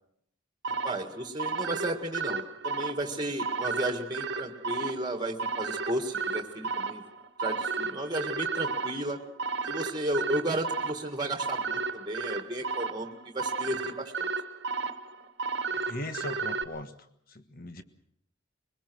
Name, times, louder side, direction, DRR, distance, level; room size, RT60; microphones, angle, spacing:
sound 1, 0.6-16.6, right 4 dB, 55° right, 1.4 m, -33 dB
voice 1, 0.7-7.0 7.4-9.2 9.7-14.3, right 1 dB, 20° right, 6 dB, 1.8 m, -33 dB
voice 2, 15.7-16.9 17.3-17.8, left 1 dB, 45° left, 10 dB, 1.4 m, -39 dB
22.5 x 20.5 x 6.2 m, 0.70 s
head